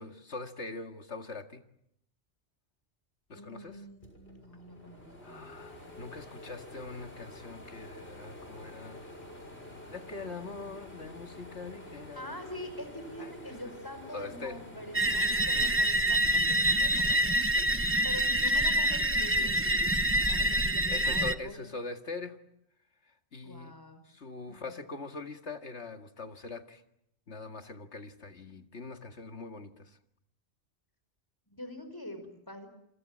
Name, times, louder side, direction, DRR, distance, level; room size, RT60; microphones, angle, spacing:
voice 1, 0.0-1.6 3.3-3.8 5.2-9.0 9.9-12.3 13.2-13.3 14.1-14.6 20.3-20.6 20.9-22.4 23.3-23.7 24.0-26.8 27.3-30.0, left 3 dB, 80° left, 7 dB, 2.3 m, -42 dB
voice 2, 3.3-5.4 12.1-19.9 20.3-21.7 23.4-24.0 24.5-24.8 31.5-32.7, equal, 20° left, 8 dB, 5.2 m, -45 dB
sound 1, 4.0-16.6 17.1-18.2, left 1 dB, 60° left, 6.7 m, -49 dB
sound 2, 14.9-21.4, right 1 dB, 10° right, 1.0 m, -26 dB
28.0 x 25.0 x 7.5 m, 0.76 s
omnidirectional pair, 1.1 m